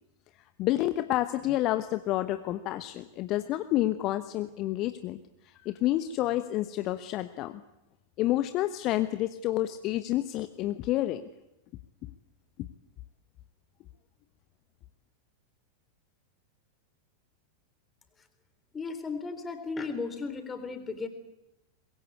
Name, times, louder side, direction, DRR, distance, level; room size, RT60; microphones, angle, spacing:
voice 1, 0.6-5.2 5.4-7.6 8.2-11.2, left 15 dB, 40° left, 11 dB, 1.0 m, -29 dB
voice 2, 18.7-21.1, left 4 dB, 15° left, 9 dB, 3.6 m, -35 dB
23.5 x 22.0 x 8.5 m, 0.93 s
figure-of-eight pair, 90°, 0 cm